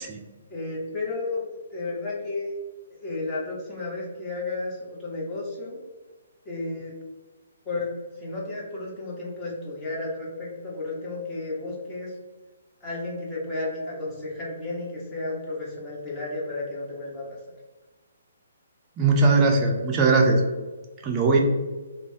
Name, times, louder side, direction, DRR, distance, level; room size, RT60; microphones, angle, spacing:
voice 1, 0.5-1.4 1.7-2.5 3.0-5.8 6.4-6.9 7.6-12.1 12.8-17.4, left 2 dB, 20° left, -5 dB, 0.9 m, -32 dB
voice 2, 19.0-20.4 21.0-21.4, right 3 dB, 25° right, 0 dB, 0.4 m, -19 dB
3.1 x 2.1 x 2.6 m, 1.3 s
hypercardioid pair, 140°, 0 cm